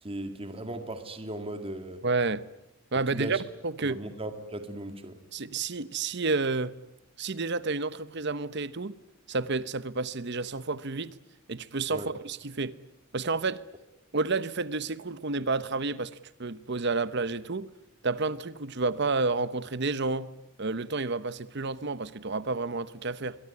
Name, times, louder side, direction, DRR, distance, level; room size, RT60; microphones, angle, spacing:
voice 1, 0.0-2.0 3.1-3.4 3.8-5.2 11.9-12.1, right 1 dB, 30° right, 2.2 m, -37 dB
voice 2, 2.0-2.4 2.9-3.4 3.6-4.0 5.3-6.7 7.2-8.9 9.3-11.1 11.5-12.7 13.1-13.6 14.1-16.1 16.4-17.7 18.0-20.3 20.6-23.4, right 3 dB, 60° right, 1.0 m, -30 dB
24.0 x 22.5 x 9.6 m
head